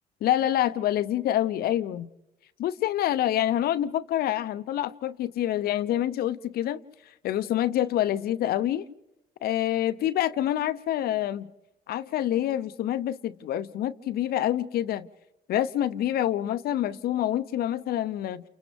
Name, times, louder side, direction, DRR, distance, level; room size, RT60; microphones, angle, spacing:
voice 1, 0.2-2.1 2.6-6.8 7.2-8.9 9.4-11.5 11.9-15.1 15.5-18.4, left 12 dB, 65° left, 0.7 m, -27 dB
30.0 x 29.5 x 3.5 m
cardioid pair, 110°, 17 cm